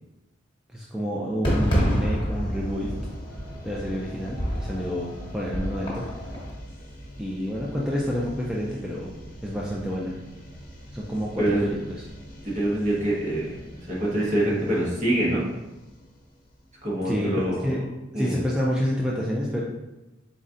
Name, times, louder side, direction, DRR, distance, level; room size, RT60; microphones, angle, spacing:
voice 1, 0.7-2.9 3.6-6.1 7.2-9.1 9.4-10.1 10.9-11.9 17.0-17.3 17.6-17.8 18.1-19.6, equal, 5° right, -5 dB, 0.4 m, -28 dB
Fireworks, 1.4-6.5, equal, 25° left, 1.1 m, -28 dB
sound 1, 2.3-17.1, equal, 45° left, 0.9 m, -45 dB
voice 2, 11.4-11.7 12.4-15.4 16.8-17.8 18.1-18.4, right 1 dB, 40° right, -5 dB, 1.2 m, -25 dB
4.2 x 3.9 x 2.5 m, 1.0 s
head